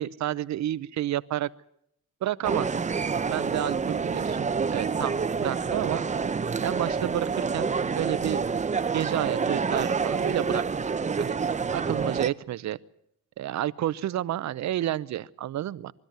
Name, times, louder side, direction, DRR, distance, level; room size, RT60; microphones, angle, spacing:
voice 1, 0.0-1.5 2.2-2.7 3.1-6.0 6.6-7.7 8.0-8.5 8.9-10.6 11.0-11.4 11.7-12.8 13.4-15.9, right 12 dB, 65° right, 16 dB, 0.8 m, -30 dB
sound 1, 2.4-12.3, right 5 dB, 25° right, 0.7 m, -28 dB
23.5 x 13.0 x 9.2 m, 0.74 s
cardioid pair, 90°, 30 cm